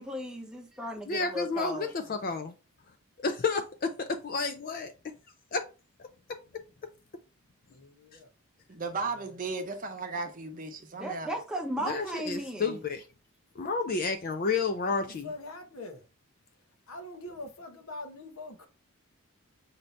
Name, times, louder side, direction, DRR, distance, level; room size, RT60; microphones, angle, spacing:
voice 1, 0.0-1.9 11.0-12.8, right 1 dB, 5° right, 0.7 m, -36 dB
voice 2, 1.1-2.5 3.2-4.9 5.5-5.6 11.8-13.1 13.6-15.3, left 4 dB, 40° left, 0.4 m, -30 dB
voice 3, 7.7-8.3 9.2-9.3 15.0-16.0 16.9-18.7, left 2 dB, 70° left, 0.9 m, -43 dB
voice 4, 8.7-11.4, right 3 dB, 40° right, 0.7 m, -35 dB
5.6 x 2.6 x 3.2 m
head